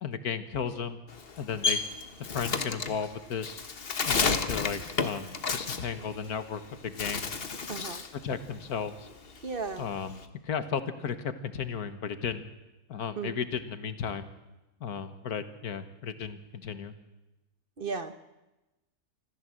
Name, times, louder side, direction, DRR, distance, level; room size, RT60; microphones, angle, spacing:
voice 1, 0.0-1.0 1.4-1.8 2.2-3.6 4.1-7.3 7.8-7.9 8.2-9.1 9.8-12.5 12.9-14.3 14.8-16.9, left 6 dB, 85° left, 11 dB, 1.8 m, -34 dB
Bird, 1.1-6.6 6.9-8.2 8.5-10.2, left 4 dB, 40° left, 1.4 m, -31 dB
voice 2, 7.7-8.0 9.4-9.9 13.2-13.4 17.8-18.1, right 5 dB, 40° right, 11 dB, 1.1 m, -35 dB
25.5 x 15.0 x 7.6 m, 1.0 s
omnidirectional pair, 1.6 m